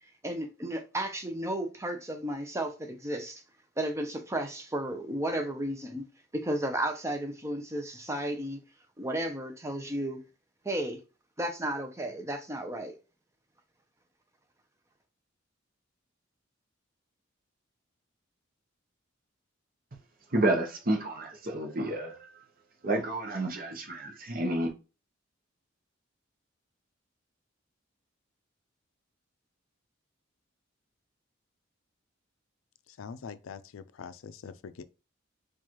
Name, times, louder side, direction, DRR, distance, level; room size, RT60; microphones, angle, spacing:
voice 1, 0.2-3.4 3.8-6.0 6.3-8.6 9.0-10.2 10.6-11.0 11.4-12.9, right 1 dB, 15° right, 0.6 m, -33 dB
voice 2, 20.3-22.4 22.8-24.7, right 1 dB, 45° right, 0.8 m, -30 dB
voice 3, 33.0-34.8, left 6 dB, 85° left, 0.4 m, -43 dB
4.6 x 2.4 x 3.0 m
head